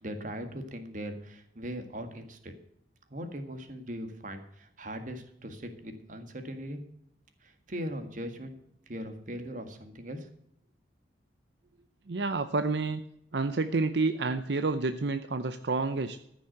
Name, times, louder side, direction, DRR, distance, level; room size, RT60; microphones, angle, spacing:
voice 1, 0.0-2.5 3.1-6.8 7.4-8.6 8.9-10.3, equal, 45° right, 7 dB, 1.8 m, -39 dB
voice 2, 12.1-13.0 13.3-16.2, right 3 dB, 75° right, 9 dB, 0.7 m, -29 dB
14.5 x 6.2 x 7.8 m, 0.77 s
head